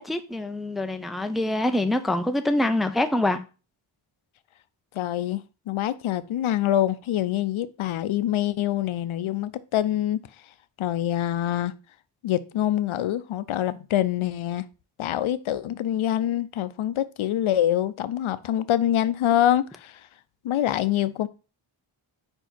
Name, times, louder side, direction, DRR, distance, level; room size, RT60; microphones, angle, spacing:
voice 1, 0.0-3.4, left 1 dB, ahead, 0.5 m, -25 dB
voice 2, 4.9-10.2 10.8-11.7 12.2-14.7 15.0-20.1 20.4-21.3, left 12 dB, 85° left, 0.6 m, -25 dB
5.1 x 4.5 x 4.4 m
wide cardioid pair, 120°, 48 cm